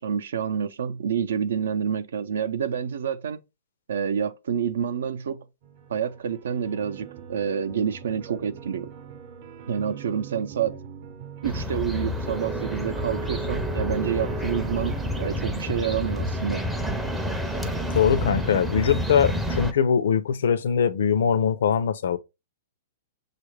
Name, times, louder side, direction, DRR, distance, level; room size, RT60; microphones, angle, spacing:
voice 1, 0.0-3.4 3.9-5.4 5.9-8.9 9.7-10.8 11.4-16.6, right 7 dB, 85° right, 0.5 m, -28 dB
sound 1, 5.6-19.0, right 8 dB, 55° right, 0.7 m, -43 dB
sound 2, 11.4-19.7, equal, 5° right, 0.4 m, -29 dB
voice 2, 17.9-22.2, left 7 dB, 75° left, 0.5 m, -22 dB
6.3 x 2.4 x 3.2 m
hypercardioid pair, 150°, 0 cm